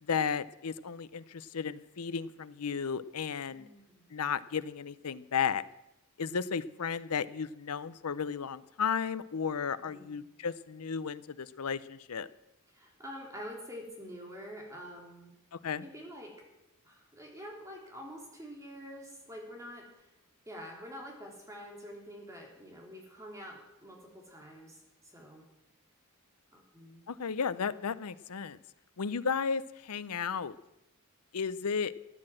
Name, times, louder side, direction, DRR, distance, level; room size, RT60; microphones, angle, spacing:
voice 1, 0.0-3.7 4.1-5.6 6.2-12.3 15.5-15.8 27.1-28.6 29.0-30.5 31.3-31.9, left 6 dB, 85° left, 16 dB, 0.6 m, -34 dB
voice 2, 3.5-4.1 6.7-7.0 9.9-10.2 12.7-15.3 15.8-16.4 16.8-20.1 20.4-24.8 25.0-25.5 26.5-27.0, equal, 15° right, 0 dB, 3.3 m, -47 dB
15.0 x 9.8 x 7.7 m, 0.88 s
head